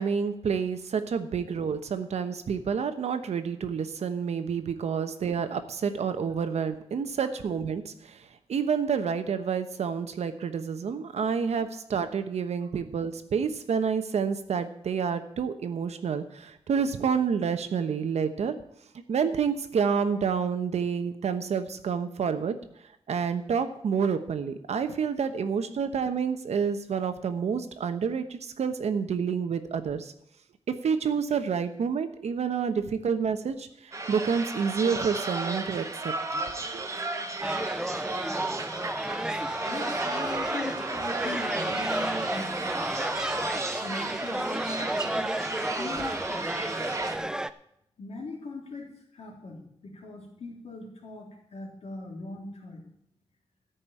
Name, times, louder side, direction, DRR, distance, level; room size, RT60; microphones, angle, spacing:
voice 1, 0.0-18.6 19.1-22.6 23.1-30.1 30.7-36.1 36.5-36.9, right 6 dB, 80° right, 9 dB, 1.1 m, -29 dB
sound 1, 33.9-47.2, right 2 dB, 30° right, 1.1 m, -34 dB
sound 2, 37.4-47.5, right 1 dB, 5° right, 0.4 m, -32 dB
voice 2, 39.7-43.0 43.8-46.7 48.0-52.9, left 2 dB, 70° left, -1 dB, 3.4 m, -40 dB
13.5 x 5.4 x 8.7 m, 0.73 s
wide cardioid pair, 145°, 11 cm